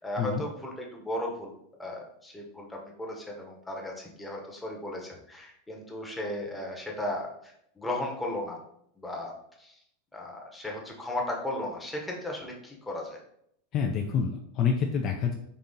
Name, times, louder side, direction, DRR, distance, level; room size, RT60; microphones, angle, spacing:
voice 1, 0.0-1.5 1.8-8.6 9.0-9.7 10.1-13.2, left 1 dB, 5° left, -1 dB, 0.9 m, -36 dB
voice 2, 13.7-15.3, left 6 dB, 35° left, 2 dB, 0.4 m, -27 dB
4.0 x 2.7 x 3.7 m, 0.72 s
supercardioid pair, 145°, 0 cm